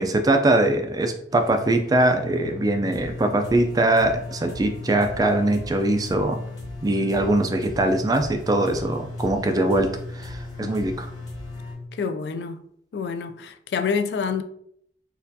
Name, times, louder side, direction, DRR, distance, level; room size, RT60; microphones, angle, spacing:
voice 1, 0.0-6.4 6.8-9.9 10.1-11.1, right 1 dB, 20° right, 0.3 m, -22 dB
sound 1, 1.3-11.7, equal, 20° left, 1.3 m, -42 dB
sound 2, 1.5-11.9, left 3 dB, 5° left, 0.9 m, -38 dB
voice 2, 11.9-12.6 12.9-14.4, left 5 dB, 65° left, 0.3 m, -27 dB
4.2 x 2.4 x 2.7 m
head